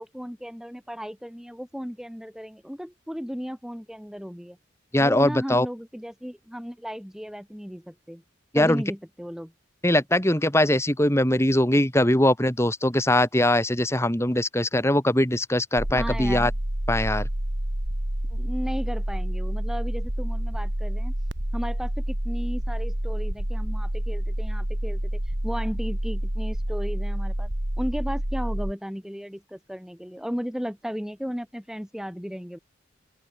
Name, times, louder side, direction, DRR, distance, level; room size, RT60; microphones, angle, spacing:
voice 1, 0.0-4.6 5.0-8.2 8.5-9.5 15.9-16.5 18.3-21.1 21.5-27.5 27.8-32.6, equal, 5° right, 4.9 m, -35 dB
voice 2, 4.9-5.7 8.5-8.8 9.8-16.5 16.9-17.3, left 1 dB, 15° left, 3.5 m, -21 dB
sound 1, 15.8-28.7, right 1 dB, 70° right, 3.3 m, -28 dB
open air
head